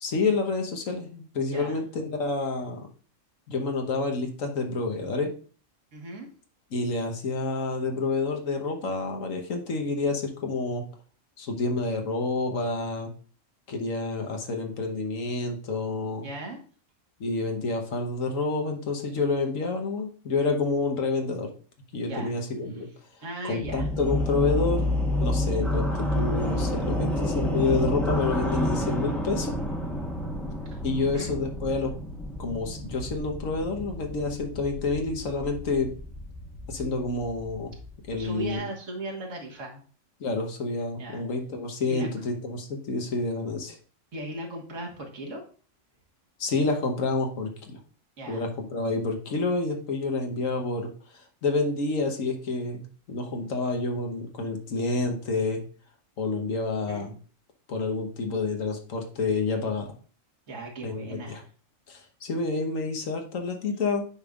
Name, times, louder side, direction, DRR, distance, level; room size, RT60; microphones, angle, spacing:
voice 1, 0.0-2.9 3.5-5.3 6.7-10.8 11.4-13.1 13.7-16.3 17.2-21.5 21.9-22.9 23.4-29.6 30.8-31.9 32.4-35.9 36.7-37.7 38.1-38.7 40.2-43.8 46.4-47.8 48.3-50.9 51.4-52.8 53.1-55.6 56.2-57.1 57.7-59.9 60.8-61.4 61.9-64.0, left 3 dB, 80° left, 3 dB, 1.5 m, -28 dB
voice 2, 5.9-6.3 16.2-16.6 22.1-22.3 23.2-23.9 31.0-31.3 36.8-37.0 38.1-39.8 41.0-41.2 41.9-42.1 44.1-45.4 48.2-48.4 56.9-57.1 60.5-61.5, right 1 dB, 70° right, 0 dB, 1.8 m, -37 dB
sound 1, 23.6-38.5, left 1 dB, ahead, 1.0 m, -30 dB
8.9 x 5.3 x 2.4 m, 0.40 s
omnidirectional pair, 1.3 m